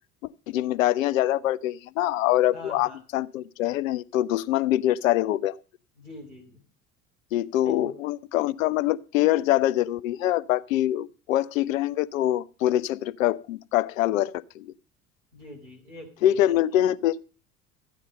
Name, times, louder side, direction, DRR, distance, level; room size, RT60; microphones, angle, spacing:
voice 1, 0.5-5.5 7.3-14.7 16.2-17.1, left 13 dB, 65° left, 0.6 m, -24 dB
voice 2, 2.5-3.0 6.0-6.6 7.6-7.9 15.3-16.4, left 1 dB, 85° right, 3.6 m, -44 dB
13.0 x 9.8 x 5.3 m
figure-of-eight pair, 65°, 44 cm